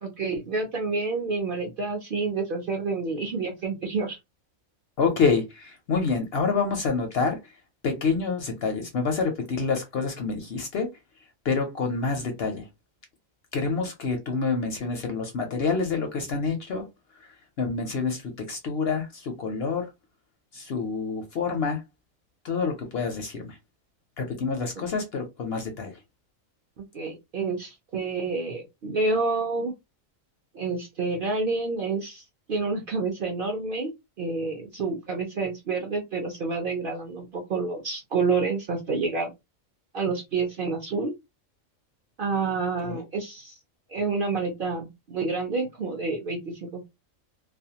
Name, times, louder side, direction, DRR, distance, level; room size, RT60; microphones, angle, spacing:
voice 1, 0.0-4.2 26.9-29.7 30.5-32.2 32.5-33.9 34.2-39.3 39.9-41.1 42.2-43.6 43.9-46.9, right 4 dB, 55° right, 0.6 m, -28 dB
voice 2, 5.0-10.9 11.4-12.7 13.5-16.9 17.1-19.9 20.5-21.8 22.4-23.6 24.2-26.0 42.8-43.0, left 4 dB, 60° left, 0.7 m, -27 dB
2.4 x 2.2 x 2.7 m
omnidirectional pair, 1.4 m